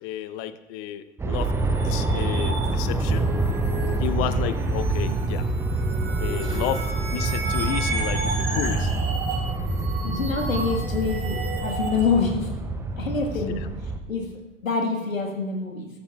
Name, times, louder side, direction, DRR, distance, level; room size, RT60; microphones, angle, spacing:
voice 1, 0.0-3.3 4.0-5.5 6.2-8.9 13.5-13.7, left 11 dB, 40° left, 13 dB, 0.7 m, -32 dB
Aircraft, 1.2-14.0, right 2 dB, 5° right, 0.5 m, -26 dB
sound 1, 1.3-12.0, right 3 dB, 30° right, 3.7 m, -34 dB
voice 2, 10.0-12.5 13.0-13.6 14.1-14.3 14.6-15.9, left 4 dB, 85° left, 3 dB, 1.5 m, -26 dB
14.0 x 13.5 x 2.3 m, 1.1 s
figure-of-eight pair, 90°, 39 cm